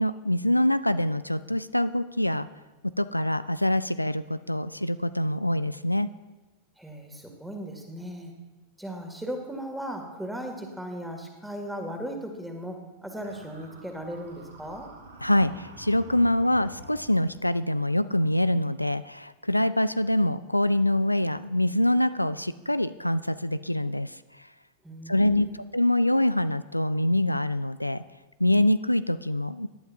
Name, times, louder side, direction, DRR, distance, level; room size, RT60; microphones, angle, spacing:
voice 1, 0.0-2.5 3.0-6.1 15.2-24.5 25.1-25.5 25.7-28.0 28.4-29.7, left 1 dB, 85° left, 14 dB, 0.3 m, -25 dB
voice 2, 6.8-8.3 8.8-14.9 24.8-25.6, equal, 5° right, 3 dB, 2.1 m, -37 dB
sound 1, 13.2-17.5, right 2 dB, 70° right, 2.0 m, -48 dB
18.5 x 11.5 x 2.7 m, 1.2 s
figure-of-eight pair, 90°, 0 cm